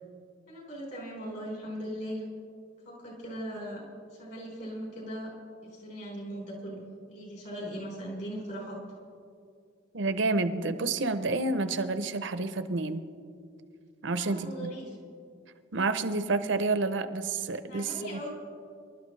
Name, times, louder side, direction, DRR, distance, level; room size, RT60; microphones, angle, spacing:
voice 1, 0.5-2.2 2.8-3.8 4.1-5.3 5.6-8.8 14.1-14.9 17.7-18.3, equal, 50° left, -3 dB, 4.2 m, -39 dB
voice 2, 9.9-13.0 14.0-14.7 15.7-18.2, right 3 dB, 65° right, 11 dB, 0.7 m, -29 dB
25.5 x 12.0 x 3.2 m, 2.4 s
head